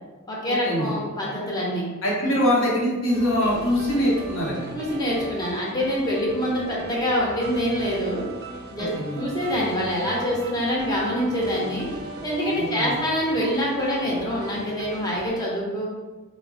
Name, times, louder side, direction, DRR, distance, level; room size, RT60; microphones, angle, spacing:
voice 1, 0.3-1.9 4.7-8.2 8.7-8.9 9.2-11.9 12.2-15.9, equal, 20° left, -5 dB, 0.6 m, -25 dB
voice 2, 2.0-4.7 8.8-9.2 12.6-12.9, equal, 75° left, -6 dB, 0.8 m, -23 dB
sound 1, 3.1-15.3, right 3 dB, 50° right, 0.3 m, -39 dB
2.8 x 2.1 x 2.6 m, 1.3 s
head